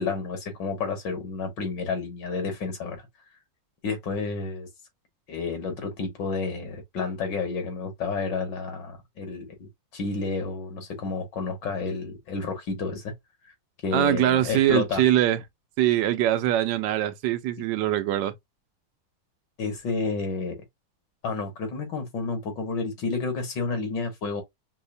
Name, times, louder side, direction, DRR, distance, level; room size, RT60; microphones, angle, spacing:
voice 1, 0.0-3.0 3.8-4.7 5.3-13.1 13.8-15.0 19.6-20.6 21.2-24.4, left 4 dB, 75° left, 2.1 m, -30 dB
voice 2, 13.9-15.4 15.8-18.3, right 13 dB, 80° right, 1.3 m, -23 dB
5.4 x 2.1 x 2.6 m
omnidirectional pair, 2.0 m